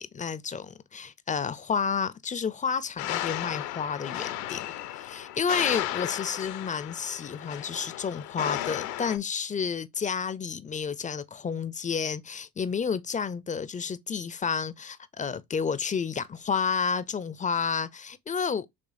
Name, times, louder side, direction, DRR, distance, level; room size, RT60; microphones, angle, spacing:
voice 1, 0.0-18.7, left 6 dB, 20° left, 0.4 m, -31 dB
sound 1, 3.0-9.2, left 14 dB, 75° left, 0.7 m, -34 dB
5.0 x 3.2 x 2.5 m
hypercardioid pair, 60°, 47 cm